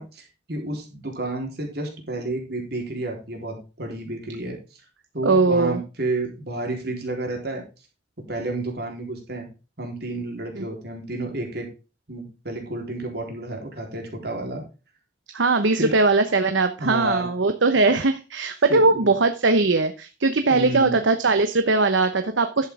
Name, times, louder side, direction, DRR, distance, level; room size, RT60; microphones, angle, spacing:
voice 1, 0.0-4.8 5.1-7.6 8.2-9.5 9.8-11.7 12.1-14.6 15.8-16.0 16.8-17.3 18.7-19.1 20.5-21.0, right 2 dB, 55° right, 1 dB, 3.9 m, -31 dB
voice 2, 5.2-5.8 10.6-10.7 15.3-22.7, right 3 dB, 80° right, 8 dB, 1.0 m, -20 dB
11.5 x 8.3 x 3.6 m, 0.31 s
head